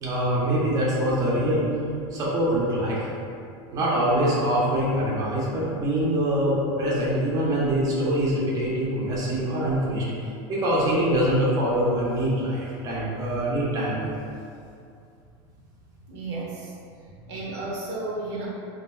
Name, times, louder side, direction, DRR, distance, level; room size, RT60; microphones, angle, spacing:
voice 1, 0.0-1.7 2.1-3.1 3.7-10.0 10.5-14.1, right 1 dB, 25° right, -7 dB, 0.7 m, -24 dB
voice 2, 16.1-16.7 17.3-18.5, right 2 dB, 85° right, -4 dB, 0.9 m, -33 dB
2.5 x 2.3 x 4.1 m, 2.4 s
supercardioid pair, 145°, 14 cm